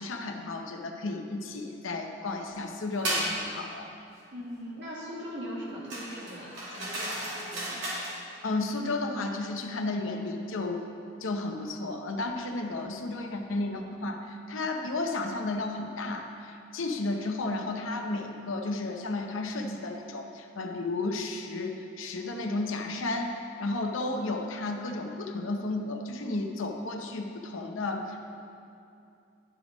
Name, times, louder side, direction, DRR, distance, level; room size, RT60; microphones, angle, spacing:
voice 1, 0.0-3.9 8.4-10.8 11.2-28.3, left 2 dB, 80° left, 3 dB, 0.8 m, -33 dB
sound 1, 3.0-3.3 5.9-8.2, right 1 dB, 80° right, 2.3 m, -33 dB
voice 2, 4.3-7.9, equal, 60° right, -5 dB, 2.0 m, -40 dB
11.0 x 5.3 x 5.0 m, 2.6 s
head